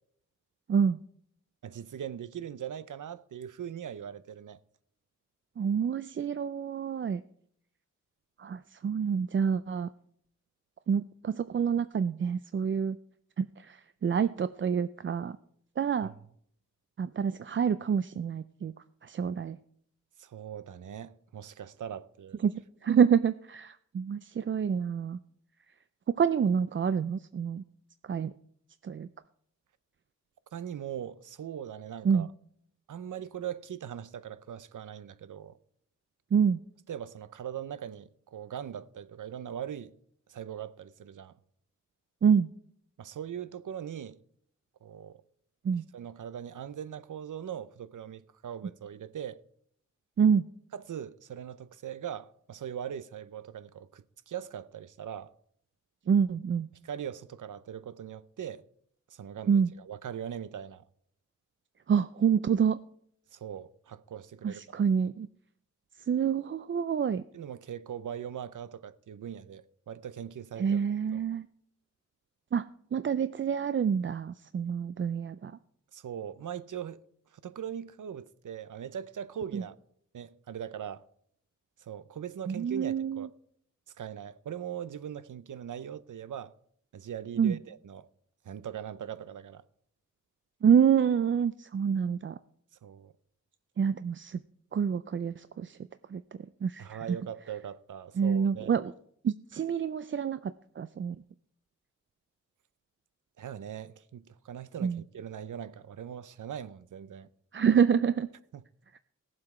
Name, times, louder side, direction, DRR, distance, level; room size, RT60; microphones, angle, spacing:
voice 1, 1.6-4.6 16.0-16.1 20.2-22.4 30.5-32.3 32.9-35.6 36.9-39.9 40.3-41.3 43.0-44.2 44.8-45.2 45.9-49.4 50.7-55.3 56.8-58.6 59.1-60.8 63.3-64.8 67.3-70.8 71.1-71.2 75.9-77.0 77.3-79.8 80.1-81.0 81.8-83.3 84.0-86.5 86.9-88.1 88.4-89.6 92.8-93.1 96.8-98.7 103.4-107.3 108.5-108.6, right 9 dB, 75° right, 0.7 m, -40 dB
voice 2, 5.6-7.2 8.4-9.9 10.9-13.0 13.4-15.4 15.8-16.1 17.0-18.7 19.0-19.6 22.4-25.2 26.1-27.6 28.1-28.3 28.8-29.1 32.0-32.3 36.3-36.6 42.2-42.5 45.6-45.8 50.2-50.5 56.1-56.7 59.5-59.7 61.9-62.8 64.4-65.3 66.0-67.2 70.6-71.5 72.5-72.6 72.9-75.5 79.5-79.6 82.5-83.3 87.4-87.6 90.6-92.4 93.8-94.4 94.7-95.8 96.1-97.2 98.2-98.9 99.2-101.2 104.8-105.0 107.5-108.3, right 7 dB, 40° right, 0.4 m, -27 dB
17.0 x 7.6 x 4.8 m
wide cardioid pair, 110°, 32 cm